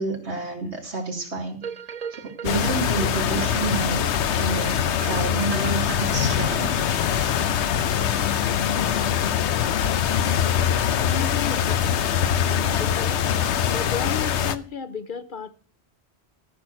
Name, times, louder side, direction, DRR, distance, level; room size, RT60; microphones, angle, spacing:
voice 1, 0.0-1.6 2.1-4.0 4.4-6.7, right 3 dB, 85° right, 2.8 m, -29 dB
sound 1, 1.6-7.9 8.4-8.5, right 7 dB, 45° right, 0.6 m, -37 dB
sound 2, 2.4-14.5, left 9 dB, 90° left, 1.0 m, -23 dB
voice 2, 11.1-12.0 12.4-13.2 13.7-15.5, left 6 dB, 50° left, 0.9 m, -33 dB
14.0 x 6.1 x 6.3 m
omnidirectional pair, 1.1 m